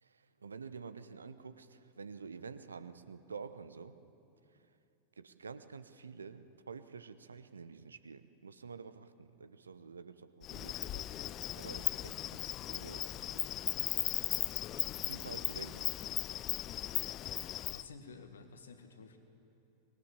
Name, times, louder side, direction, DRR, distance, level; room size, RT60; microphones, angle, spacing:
voice 1, 0.0-4.0 4.5-4.7 5.2-13.7 15.0-15.9 16.8-17.0, right 5 dB, 75° right, 13 dB, 0.9 m, -49 dB
Insect, 10.4-17.8, left 13 dB, 35° left, 0.5 m, -37 dB
voice 2, 17.7-19.2, left 4 dB, 70° left, 6 dB, 2.0 m, -52 dB
23.0 x 20.0 x 8.3 m, 2.7 s
figure-of-eight pair, 90°, 0 cm